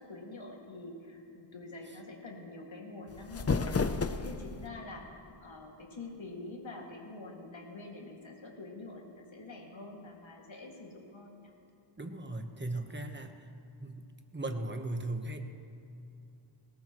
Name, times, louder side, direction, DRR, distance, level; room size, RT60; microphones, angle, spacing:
voice 1, 0.0-3.9 4.2-5.1 5.4-11.5, left 2 dB, 70° left, 0 dB, 2.3 m, -46 dB
sound 1, 3.1-4.7, left 4 dB, 30° left, 0.6 m, -31 dB
voice 2, 12.0-13.5 13.8-14.0 14.3-15.4, right 2 dB, 20° right, 5 dB, 1.1 m, -37 dB
20.0 x 18.0 x 3.1 m, 2.7 s
wide cardioid pair, 85°, 48 cm